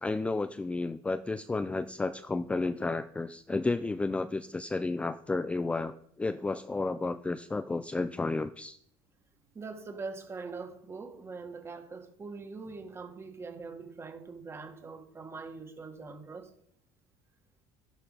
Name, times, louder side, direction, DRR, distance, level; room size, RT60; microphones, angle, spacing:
voice 1, 0.0-8.8, left 3 dB, 10° left, 0.5 m, -32 dB
voice 2, 9.6-16.5, right 4 dB, 20° right, 1.9 m, -43 dB
12.0 x 11.5 x 5.7 m
cardioid pair, 140°, 11 cm